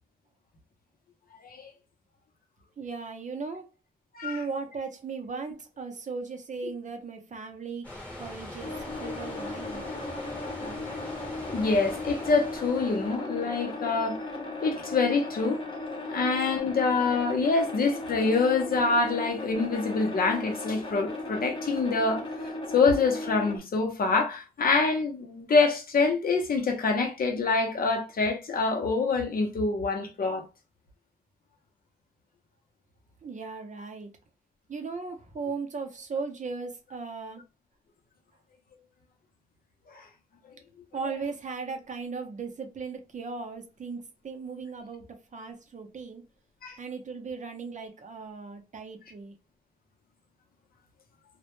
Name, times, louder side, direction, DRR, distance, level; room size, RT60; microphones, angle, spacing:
voice 1, 2.8-3.7 4.2-7.9 8.2-9.8 10.6-10.9 33.2-34.1 34.7-37.4 40.9-46.2 46.8-49.4, right 4 dB, 55° right, 0.5 m, -37 dB
sound 1, 7.8-13.2, left 1 dB, 10° left, 0.9 m, -42 dB
sound 2, 8.6-23.6, left 2 dB, 30° left, 0.7 m, -36 dB
voice 2, 11.5-14.2 14.6-22.2 22.7-30.5 39.9-40.0 46.6-46.8, left 4 dB, 75° left, 0.6 m, -26 dB
2.1 x 2.1 x 2.9 m
wide cardioid pair, 120°, 15 cm